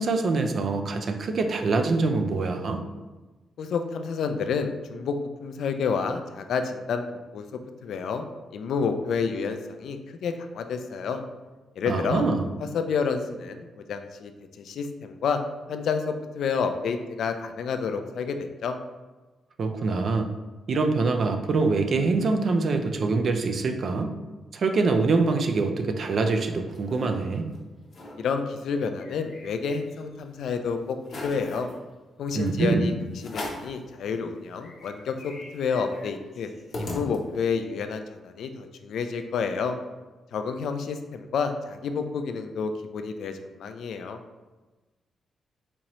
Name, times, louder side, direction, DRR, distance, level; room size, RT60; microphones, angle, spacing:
voice 1, 0.0-2.8 11.9-12.5 19.6-20.3 20.7-24.1 24.5-27.5 32.3-32.9, right 3 dB, 45° right, 6 dB, 0.3 m, -24 dB
voice 2, 3.6-7.1 7.3-7.5 7.8-8.2 8.5-11.2 11.8-12.2 12.7-14.3 14.6-15.4 15.7-18.8 28.2-31.7 32.2-32.9 33.2-36.5 36.8-39.8 40.3-44.2, left 5 dB, 65° left, 7 dB, 0.3 m, -29 dB
sound 1, 26.5-27.1 27.5-27.6 27.8-28.2 28.6-30.2 30.6-30.7 31.0-31.7 32.5-32.6 33.2-33.8 34.2-34.3 34.6-37.6, left 1 dB, 40° left, 0.7 m, -39 dB
4.2 x 2.7 x 3.0 m, 1.2 s
wide cardioid pair, 160°, 0 cm